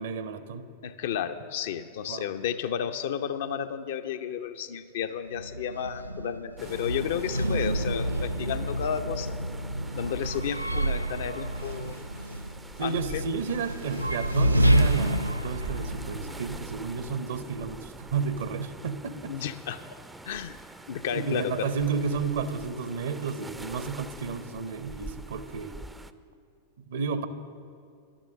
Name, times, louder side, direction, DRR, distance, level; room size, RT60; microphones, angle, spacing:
voice 1, 0.0-0.7 2.1-2.3 11.8-12.0 12.8-19.3 21.0-25.8 26.9-27.3, right 5 dB, 60° right, 12 dB, 0.8 m, -32 dB
voice 2, 0.8-9.4 9.9-12.0 12.8-13.2 19.3-19.8 20.2-20.6 20.9-21.7, left 8 dB, 55° left, 8 dB, 0.6 m, -32 dB
sound 1, 5.3-17.4, right 1 dB, 85° right, 0.3 m, -29 dB
sound 2, 6.6-26.1, right 2 dB, 10° right, 0.5 m, -45 dB
12.0 x 10.5 x 6.7 m, 2.3 s
figure-of-eight pair, 90°, 0 cm